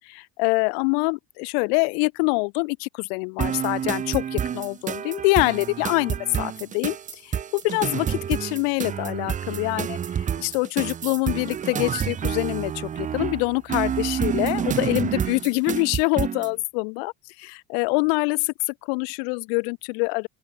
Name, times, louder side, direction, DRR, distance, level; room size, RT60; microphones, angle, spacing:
voice 1, 0.0-20.3, left 37 dB, 80° left, 2.0 m, -25 dB
sound 1, 3.4-16.5, right 8 dB, 25° right, 2.0 m, -28 dB
open air
cardioid pair, 165°, 30 cm